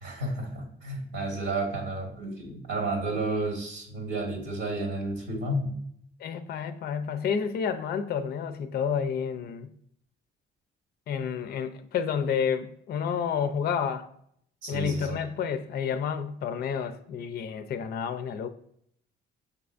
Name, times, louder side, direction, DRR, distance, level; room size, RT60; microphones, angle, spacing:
voice 1, 0.0-5.7 14.6-15.2, right 2 dB, 85° right, 1.3 m, -31 dB
voice 2, 6.2-9.7 11.1-14.1 14.7-18.5, left 7 dB, 50° left, 0.4 m, -30 dB
5.7 x 3.3 x 2.4 m
cardioid pair, 90°, 20 cm